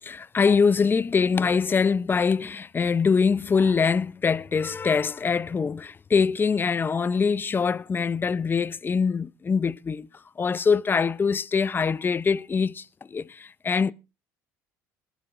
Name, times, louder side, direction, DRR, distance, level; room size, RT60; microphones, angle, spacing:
voice 1, 0.0-10.1 10.4-13.9, left 5 dB, 25° left, 0.6 m, -23 dB
20.0 x 12.5 x 2.6 m
hypercardioid pair, 75°, 8 cm